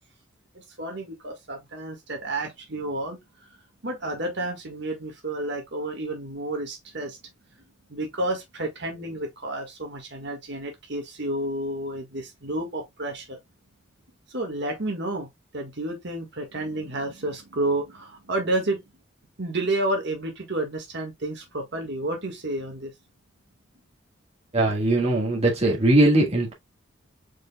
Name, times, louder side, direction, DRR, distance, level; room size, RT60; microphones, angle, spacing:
voice 1, 0.5-3.5 3.8-7.2 7.9-13.4 14.3-15.3 15.5-18.8 19.4-22.9, right 1 dB, 60° right, 1.7 m, -30 dB
voice 2, 24.5-26.5, right 1 dB, 35° right, 1.6 m, -20 dB
5.0 x 4.5 x 2.2 m
head